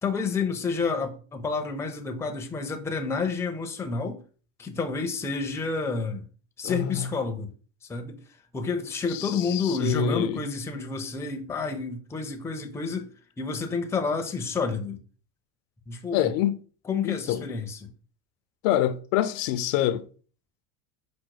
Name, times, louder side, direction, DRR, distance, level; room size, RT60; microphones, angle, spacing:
voice 1, 0.0-4.2 4.6-6.2 6.6-7.5 7.9-8.2 8.5-13.1 13.4-15.0 15.9-16.3 16.9-17.9, left 4 dB, 5° left, 0.4 m, -29 dB
voice 2, 6.6-7.1 9.1-10.4 16.1-16.6 17.0-17.4 18.6-20.0, left 11 dB, 70° left, 0.5 m, -26 dB
5.0 x 2.0 x 4.6 m
supercardioid pair, 120°, 39 cm